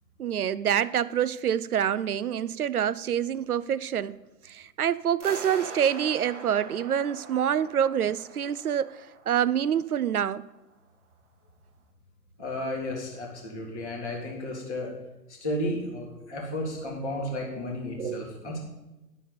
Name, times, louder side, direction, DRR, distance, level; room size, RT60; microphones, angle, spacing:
voice 1, 0.2-4.2 4.4-10.4 18.0-18.2, right 9 dB, 60° right, 0.6 m, -26 dB
sound 1, 5.2-10.2, right 4 dB, 45° right, 1.8 m, -43 dB
voice 2, 12.4-14.9 15.3-18.6, left 1 dB, 5° right, 0.5 m, -33 dB
11.5 x 5.6 x 8.4 m
figure-of-eight pair, 125°, 50 cm